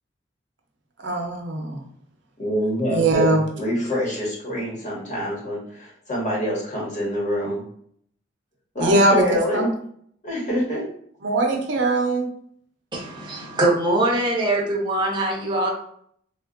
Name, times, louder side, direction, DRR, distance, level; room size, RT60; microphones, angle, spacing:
voice 1, 1.0-1.8 2.9-3.4 8.8-9.7 11.2-12.3, right 2 dB, 65° right, 1 dB, 0.7 m, -21 dB
voice 2, 2.4-7.6 8.7-9.7 10.2-10.9, equal, 40° left, -5 dB, 1.2 m, -26 dB
voice 3, 12.9-15.7, right 2 dB, 25° right, -2 dB, 0.8 m, -22 dB
3.5 x 2.4 x 2.5 m, 0.63 s
head